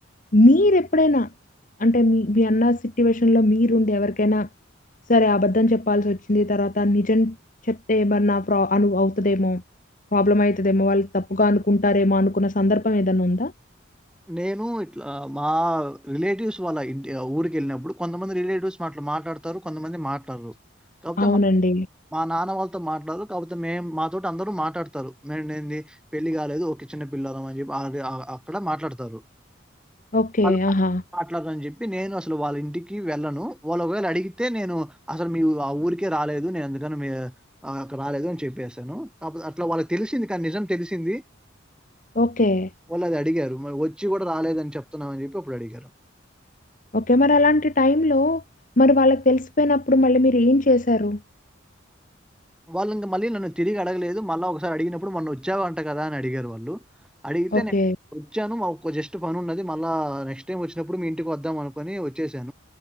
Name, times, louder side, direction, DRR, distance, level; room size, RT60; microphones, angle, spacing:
voice 1, 0.3-1.3 1.8-4.5 5.1-7.3 7.7-9.6 10.1-13.5 21.2-21.9 30.1-31.0 42.1-42.7 46.9-48.4 48.8-51.2 57.5-57.9, left 2 dB, 40° left, 1.5 m, -19 dB
voice 2, 14.3-20.5 21.0-21.4 22.1-29.2 30.4-30.6 31.1-37.3 37.6-41.2 42.9-45.9 52.7-56.8 57.2-57.7 58.1-62.5, equal, 5° right, 3.7 m, -28 dB
head